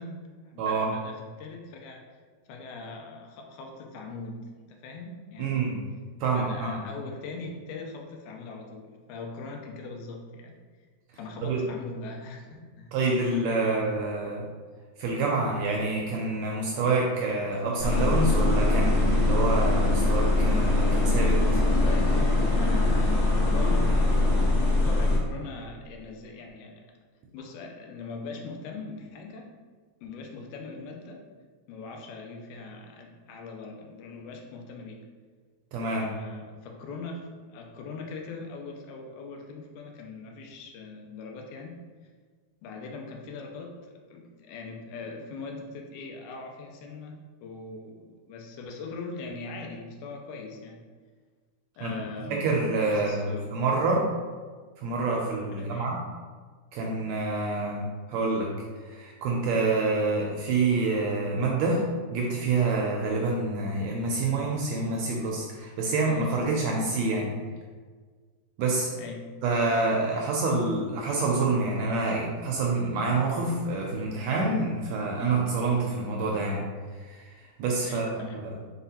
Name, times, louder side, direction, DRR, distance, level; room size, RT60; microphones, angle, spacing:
voice 1, 0.0-2.0 2.5-5.8 6.3-10.5 11.1-12.9 13.6-13.9 21.6-24.0 24.4-26.8 27.3-29.5 30.0-31.3 31.7-35.0 35.9-41.8 42.6-50.8 51.8-53.5 55.6-55.9 68.9-69.3 77.8-78.4, left 3 dB, 90° left, 2 dB, 2.1 m, -41 dB
voice 2, 0.6-0.9 5.4-5.8 6.2-6.8 11.4-11.6 12.9-14.4 15.0-21.6 35.7-36.1 51.8-51.9 52.4-54.1 54.8-56.0 56.7-58.5 58.9-61.8 62.1-67.4 68.6-68.9 69.4-76.6 77.0-77.3 77.6-78.1 78.4-78.5, right 3 dB, 80° right, -1 dB, 1.6 m, -27 dB
sound 1, 17.8-25.2, left 2 dB, 55° left, 0.7 m, -22 dB
4.8 x 4.0 x 2.8 m, 1.5 s
omnidirectional pair, 3.5 m